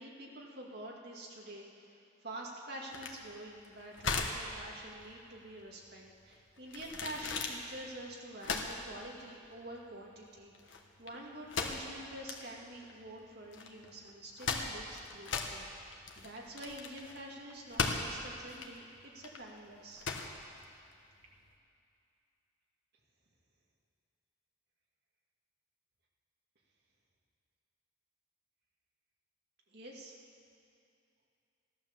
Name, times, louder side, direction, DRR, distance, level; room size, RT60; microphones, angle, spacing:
voice 1, 0.0-15.7 16.2-20.0 29.7-30.1, right 1 dB, 55° right, -2 dB, 2.1 m, -47 dB
sound 1, 2.9-21.5, left 4 dB, 75° left, 1.3 m, -39 dB
15.0 x 11.5 x 7.2 m, 2.5 s
head